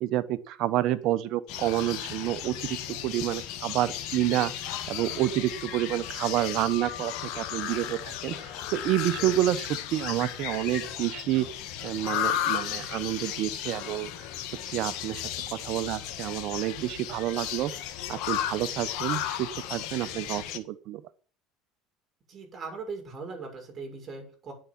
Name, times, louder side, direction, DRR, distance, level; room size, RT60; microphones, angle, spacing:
voice 1, 0.0-4.5 4.9-11.5 11.8-14.1 14.7-15.2 15.5-17.7 18.1-21.0, right 14 dB, 65° right, 15 dB, 1.1 m, -29 dB
sound 1, 1.5-20.6, left 11 dB, 65° left, 1.5 m, -35 dB
voice 2, 22.3-24.5, right 4 dB, 40° right, 3 dB, 6.4 m, -39 dB
9.8 x 7.7 x 7.8 m, 0.42 s
supercardioid pair, 85°, 0 cm